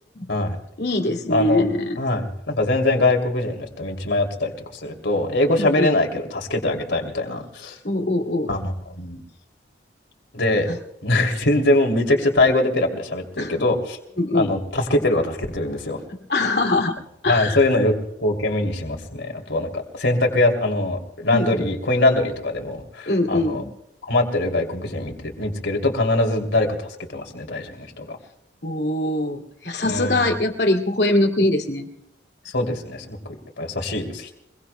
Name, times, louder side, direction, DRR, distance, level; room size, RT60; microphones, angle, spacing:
voice 1, 0.8-2.0 5.6-5.9 7.8-8.5 10.7-10.8 13.4-13.5 14.2-14.5 16.1-16.9 17.2-17.7 21.3-21.7 23.1-23.7 28.6-31.9, left 1 dB, 60° left, 4 dB, 2.5 m, -23 dB
voice 2, 1.3-1.7 2.0-4.5 4.8-7.8 8.5-9.2 10.3-10.7 11.0-14.0 14.3-16.0 17.3-17.9 18.2-23.6 24.0-28.2 29.9-30.3 32.5-33.2 33.6-34.3, left 2 dB, 75° left, 3 dB, 3.0 m, -22 dB
25.5 x 22.5 x 2.3 m, 0.80 s
head